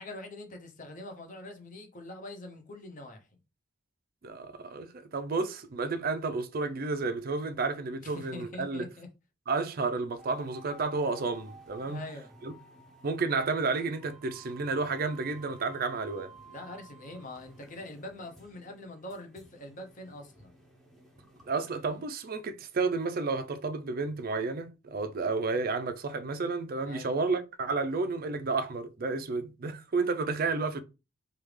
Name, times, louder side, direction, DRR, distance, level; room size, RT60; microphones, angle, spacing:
voice 1, 0.0-3.3 8.0-9.1 11.8-12.3 16.5-20.6 26.9-27.1, left 2 dB, 40° left, 0.7 m, -44 dB
voice 2, 4.2-8.9 9.5-12.0 12.4-12.5 13.0-16.3 21.5-30.8, right 4 dB, 45° right, 0.4 m, -31 dB
sound 1, 10.2-22.1, right 3 dB, ahead, 0.6 m, -54 dB
3.3 x 2.4 x 3.2 m
head